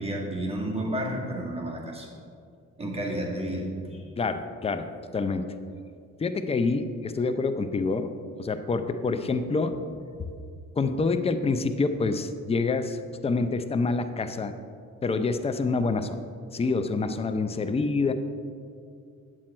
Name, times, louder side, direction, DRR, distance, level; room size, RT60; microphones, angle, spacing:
voice 1, 0.0-2.1 2.8-4.0, right 1 dB, 20° right, -2 dB, 1.9 m, -31 dB
voice 2, 4.2-4.9 5.1-5.5 6.2-8.1 8.4-9.7 10.8-13.0 13.2-14.5 15.0-16.2 16.5-18.1, left 4 dB, 20° left, 8 dB, 0.5 m, -26 dB
8.5 x 7.8 x 4.3 m, 2.3 s
cardioid pair, 90°, 30 cm